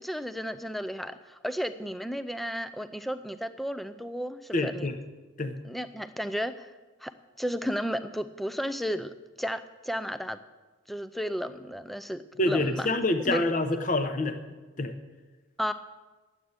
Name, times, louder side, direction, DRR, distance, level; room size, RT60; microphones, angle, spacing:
voice 1, 0.0-4.9 5.6-6.7 7.0-7.1 7.4-10.4 10.9-12.9 13.2-13.4 15.6-15.7, equal, ahead, 11 dB, 0.4 m, -33 dB
voice 2, 4.5-5.0 5.4-5.6 12.4-14.4 14.8-14.9, left 2 dB, 35° left, 8 dB, 0.8 m, -26 dB
11.0 x 8.1 x 8.7 m, 1.3 s
head